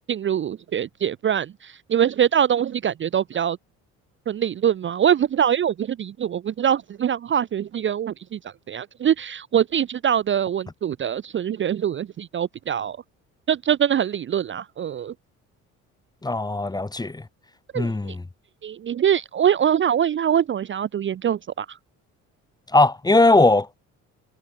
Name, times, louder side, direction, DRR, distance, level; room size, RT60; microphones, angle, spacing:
voice 1, 0.1-3.6 4.3-8.4 8.7-13.0 13.5-15.1 17.7-18.2 18.6-21.8, right 9 dB, 35° right, 0.6 m, -23 dB
voice 2, 16.2-17.2 17.7-18.2 22.7-23.8, left 2 dB, 10° left, 1.1 m, -19 dB
supercardioid pair, 75°, 33 cm